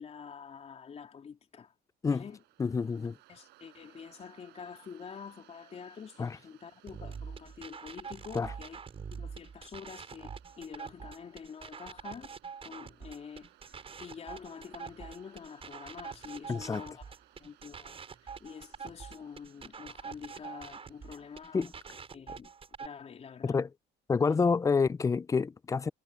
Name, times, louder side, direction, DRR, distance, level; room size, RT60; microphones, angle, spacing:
voice 1, 0.0-1.7 2.0-2.4 2.9-8.8 9.1-12.3 12.6-17.1 17.4-21.7 22.1-22.5 22.8-23.6 24.2-24.5, left 6 dB, 40° left, 3.1 m, -47 dB
Waves surf, 2.1-21.8, right 18 dB, 85° right, 5.2 m, -63 dB
voice 2, 2.6-3.1 6.2-6.3 8.4-8.5 16.5-16.8 21.5-21.7 23.4-23.7 24.1-25.9, left 5 dB, 20° left, 0.4 m, -28 dB
sound 1, 6.9-22.9, right 6 dB, 35° right, 6.2 m, -45 dB
cardioid pair, 110°, 17 cm